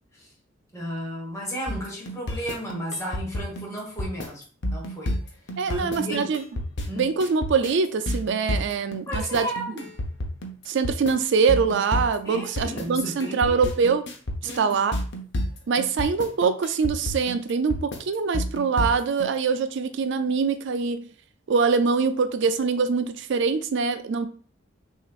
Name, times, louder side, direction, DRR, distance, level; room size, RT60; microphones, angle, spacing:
voice 1, 0.7-4.4 4.7-5.1 5.7-6.3 6.9-7.1 9.1-9.9 12.2-13.6 14.4-14.9, equal, 15° left, -3 dB, 1.4 m, -34 dB
sound 1, 1.7-19.3, left 1 dB, 65° left, 0.9 m, -30 dB
voice 2, 5.6-6.4 7.0-9.5 10.7-14.0 14.6-14.9 15.7-21.1 21.5-24.3, right 5 dB, 65° right, 10 dB, 0.4 m, -24 dB
6.1 x 2.8 x 2.4 m, 0.42 s
head